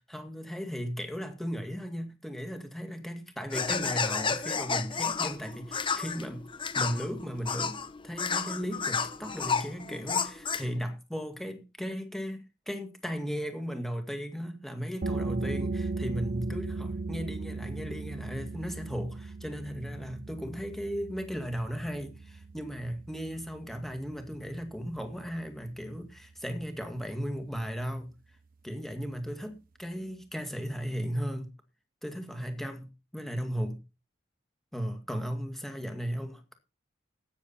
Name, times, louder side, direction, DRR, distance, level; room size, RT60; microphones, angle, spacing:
voice 1, 0.1-6.4 6.8-28.1 28.6-31.5 32.0-32.9 33.1-33.8 34.7-36.6, equal, ahead, 2.1 m, -36 dB
sound 1, 3.5-10.8, left 5 dB, 25° left, 0.9 m, -31 dB
sound 2, 15.0-26.4, right 3 dB, 45° right, 0.6 m, -38 dB
13.0 x 9.5 x 4.2 m
head